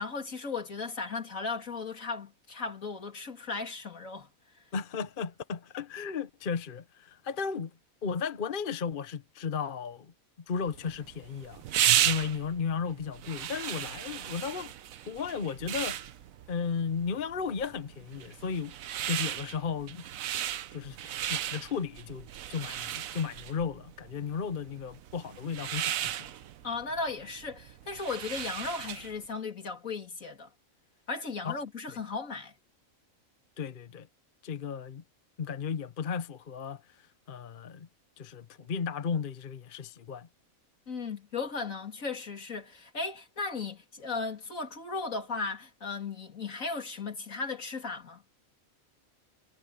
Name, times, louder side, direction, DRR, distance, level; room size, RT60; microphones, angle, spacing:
voice 1, 0.0-4.3 26.6-30.5 31.1-32.5 40.9-48.2, left 4 dB, 75° left, 3.2 m, -36 dB
voice 2, 4.7-7.7 8.0-10.1 10.5-14.7 15.0-16.0 16.5-18.8 19.0-20.0 20.7-26.2 31.4-31.6 33.6-34.1 34.4-35.0 35.4-37.9 38.2-40.3, left 6 dB, 45° left, 1.0 m, -35 dB
sound 1, 10.7-29.2, right 11 dB, 85° right, 1.2 m, -34 dB
omnidirectional pair, 1.4 m